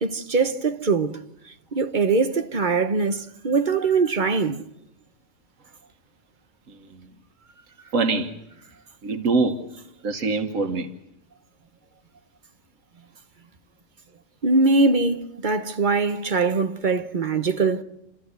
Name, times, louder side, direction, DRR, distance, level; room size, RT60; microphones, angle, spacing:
voice 1, 0.0-1.2 1.7-4.6 14.4-17.8, right 4 dB, 40° right, 1.0 m, -22 dB
voice 2, 6.7-7.1 7.9-8.4 9.0-9.6 10.0-10.9, right 3 dB, 85° right, 1.5 m, -24 dB
28.5 x 14.0 x 8.0 m
omnidirectional pair, 1.3 m